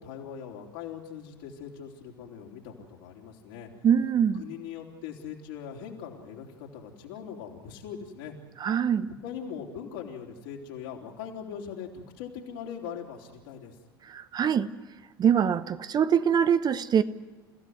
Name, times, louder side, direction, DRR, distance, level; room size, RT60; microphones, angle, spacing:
voice 1, 0.0-3.8 4.3-8.3 9.2-13.8, left 7 dB, 65° left, 3.9 m, -41 dB
voice 2, 3.8-4.4 8.6-9.1 14.1-14.7 15.2-17.0, right 8 dB, 35° right, 0.9 m, -23 dB
30.0 x 16.0 x 8.0 m
figure-of-eight pair, 70°, 12 cm